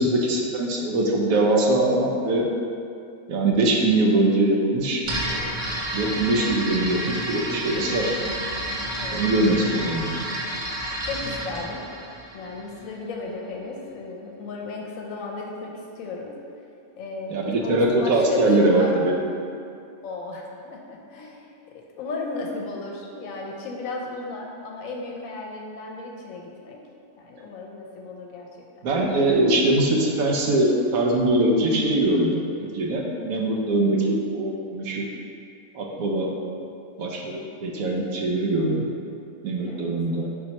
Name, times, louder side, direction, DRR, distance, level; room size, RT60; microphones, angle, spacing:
voice 1, 0.0-2.5 3.3-5.5 5.9-8.1 9.1-10.2 17.3-19.1 28.8-32.3 32.6-35.1 35.7-36.3 37.0-38.9 39.4-40.3, right 2 dB, 80° right, 0 dB, 1.1 m, -22 dB
sound 1, 5.0-12.8, right 1 dB, 50° right, 0.6 m, -30 dB
voice 2, 8.9-9.2 11.0-11.8 12.3-15.7 16.0-16.3 17.0-19.1 20.0-21.4 22.0-26.8 27.2-28.5 36.4-36.7 39.6-39.9, left 3 dB, 75° left, 0 dB, 1.0 m, -34 dB
4.3 x 4.1 x 2.9 m, 2.5 s
omnidirectional pair, 1.5 m